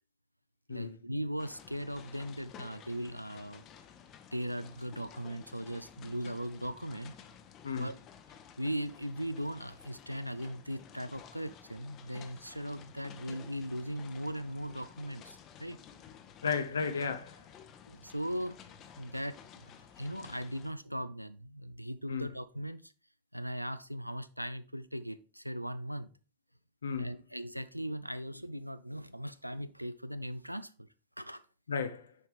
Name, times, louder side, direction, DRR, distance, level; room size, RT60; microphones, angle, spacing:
voice 1, 0.7-3.6 4.3-7.1 7.8-8.0 8.6-15.8 17.9-18.6 19.0-22.9 23.3-26.1 27.0-30.9 31.2-31.4, equal, 90° right, 0.4 m, -39 dB
sound 1, 1.4-20.7, left 8 dB, 35° left, 0.7 m, -54 dB
voice 2, 16.4-17.4 22.1-22.3 26.8-27.1 31.7-32.1, left 6 dB, 70° left, 0.5 m, -34 dB
6.4 x 5.6 x 3.3 m
figure-of-eight pair, 90°, 0 cm